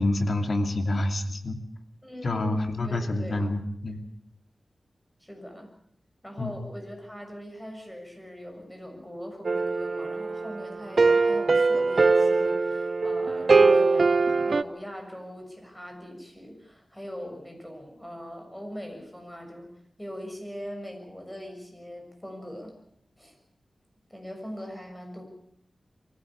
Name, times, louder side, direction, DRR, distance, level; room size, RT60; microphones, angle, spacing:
voice 1, 0.0-1.6 2.2-4.0 6.4-6.5, left 2 dB, 60° left, 5 dB, 2.6 m, -27 dB
voice 2, 2.0-3.5 5.2-5.7 6.2-19.7 20.0-22.7 23.2-23.3 24.1-25.2, equal, 10° left, 3 dB, 6.9 m, -41 dB
sound 1, 9.4-14.6, right 4 dB, 55° right, 0.8 m, -22 dB
23.5 x 16.0 x 8.6 m, 0.71 s
wide cardioid pair, 100°, 0 cm